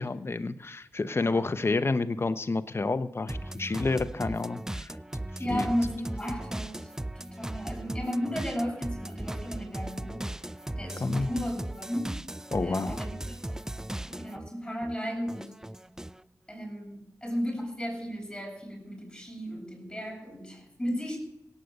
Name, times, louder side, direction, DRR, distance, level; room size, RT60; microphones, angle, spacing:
voice 1, 0.0-4.9 5.5-5.7 11.0-11.3 12.5-13.0, left 3 dB, 40° left, 12 dB, 1.0 m, -29 dB
voice 2, 1.1-1.5 5.4-6.9 7.1-10.3 10.8-12.2 12.6-13.6 14.1-15.5 16.5-21.2, equal, 10° left, 1 dB, 8.0 m, -34 dB
sound 1, 3.3-14.5 14.8-16.2, right 1 dB, 10° right, 0.4 m, -37 dB
17.5 x 8.5 x 6.7 m, 0.81 s
cardioid pair, 45°, 6 cm